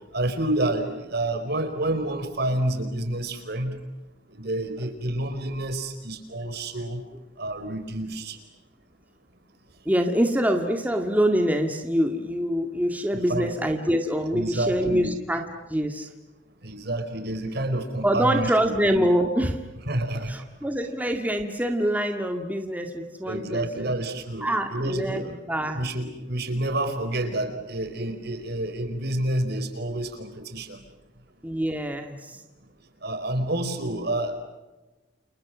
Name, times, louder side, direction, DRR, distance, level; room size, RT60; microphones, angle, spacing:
voice 1, 0.1-3.8 4.3-7.0 7.4-8.4 13.3-13.5 14.3-15.1 16.6-18.5 19.9-20.3 23.3-24.4 24.7-25.3 25.7-30.8 33.0-34.4, right 1 dB, 60° right, 7 dB, 4.8 m, -28 dB
voice 2, 9.9-16.1 18.0-19.7 20.3-23.9 24.4-25.8 31.4-32.4, equal, 10° right, 4 dB, 2.0 m, -25 dB
30.0 x 29.5 x 6.2 m, 1.1 s
head